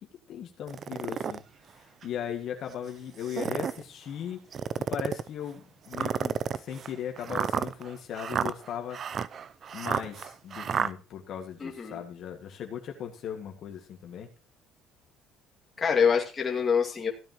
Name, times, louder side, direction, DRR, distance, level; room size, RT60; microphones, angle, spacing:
voice 1, 0.3-1.4 1.7-4.4 4.8-9.0 9.7-14.3, left 9 dB, 55° left, 3 dB, 2.0 m, -38 dB
sound 1, 0.7-1.4 2.0-2.1 3.1-3.8 4.5-5.3 5.9-10.9, right 7 dB, 40° right, 0.5 m, -31 dB
voice 2, 11.6-12.0 15.8-17.1, left 6 dB, 25° left, 0 dB, 2.3 m, -25 dB
16.0 x 8.8 x 3.0 m, 0.32 s
cardioid pair, 125°, 0 cm